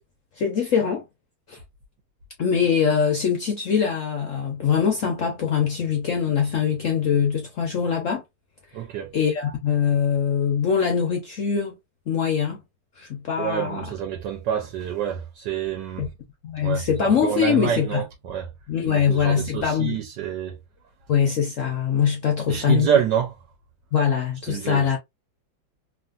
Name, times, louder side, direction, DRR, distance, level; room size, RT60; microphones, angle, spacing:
voice 1, 0.4-1.0 1.5-1.6 2.4-8.2 9.1-11.8 12.1-12.6 13.0-13.8 16.0-16.1 16.4-18.0 18.7-20.0 21.1-22.9 23.9-25.0, left 7 dB, 65° left, 0.8 m, -23 dB
voice 2, 8.7-9.1 13.4-16.1 16.6-18.5 18.9-20.6 22.5-23.3 24.5-25.0, right 9 dB, 70° right, 1.3 m, -27 dB
3.1 x 2.5 x 2.4 m
omnidirectional pair, 2.1 m